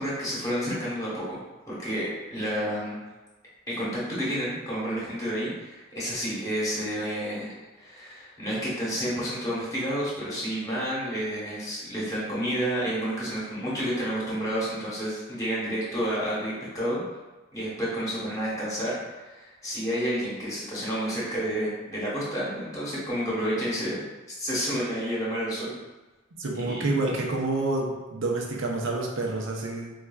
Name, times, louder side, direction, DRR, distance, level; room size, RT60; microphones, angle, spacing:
voice 1, 0.0-1.4 1.7-3.0 3.7-7.5 7.8-17.0 17.5-24.0 24.4-25.7 26.6-27.1, equal, 15° left, -7 dB, 1.0 m, -30 dB
voice 2, 26.4-29.9, right 2 dB, 75° right, 0 dB, 0.6 m, -28 dB
4.3 x 2.3 x 2.3 m, 1.2 s
head